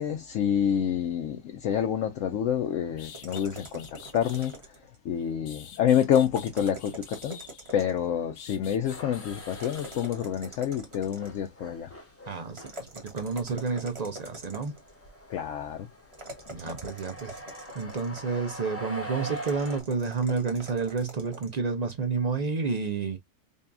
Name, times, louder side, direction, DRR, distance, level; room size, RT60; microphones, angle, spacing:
voice 1, 0.0-4.7 5.0-7.4 7.7-11.9 15.3-15.9, left 9 dB, 70° left, 0.9 m, -28 dB
sound 1, 2.6-2.7 3.0-4.6 5.2-7.8 8.4-10.1, left 8 dB, 85° left, 1.3 m, -48 dB
sound 2, 3.1-5.0 6.0-8.1 9.5-11.5 12.5-14.9 16.1-18.4 19.4-21.6, right 1 dB, 25° right, 1.1 m, -44 dB
sound 3, 8.9-10.6 10.8-19.8, right 1 dB, 15° left, 0.7 m, -44 dB
voice 2, 12.3-14.7 16.5-17.4 17.7-23.2, right 5 dB, 55° right, 0.4 m, -30 dB
5.2 x 2.4 x 2.5 m
omnidirectional pair, 1.4 m